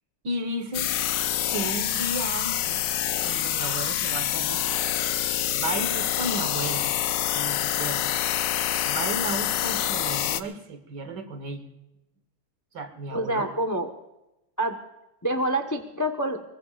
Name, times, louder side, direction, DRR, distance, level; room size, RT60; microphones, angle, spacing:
voice 1, 0.2-0.9 1.5-2.8 3.2-4.6 5.5-6.9 7.2-8.0 8.9-11.7 12.7-13.5, right 2 dB, 55° right, 9 dB, 2.0 m, -33 dB
sound 1, 0.7-10.4, left 11 dB, 70° left, 1.2 m, -26 dB
voice 2, 13.1-13.9 14.6-14.8 15.2-16.4, right 1 dB, 20° left, 5 dB, 0.5 m, -27 dB
23.0 x 21.0 x 2.5 m, 0.94 s
omnidirectional pair, 2.4 m